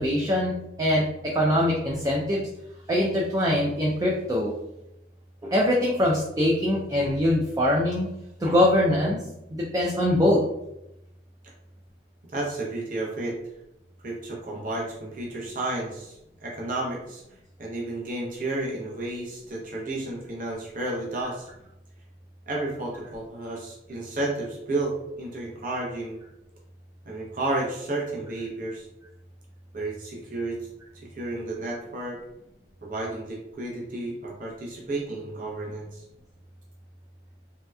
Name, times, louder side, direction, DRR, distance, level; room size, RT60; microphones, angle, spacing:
voice 1, 0.0-2.4 2.9-4.5 5.4-8.1 8.4-9.2 9.5-10.4, left 1 dB, 20° right, -3 dB, 0.4 m, -23 dB
voice 2, 12.3-13.3 14.0-17.2 17.6-21.5 22.5-26.2 27.0-28.9 29.7-30.6 31.1-32.2 32.8-36.0, right 2 dB, 50° right, -3 dB, 0.7 m, -32 dB
3.2 x 2.8 x 2.3 m, 0.86 s
head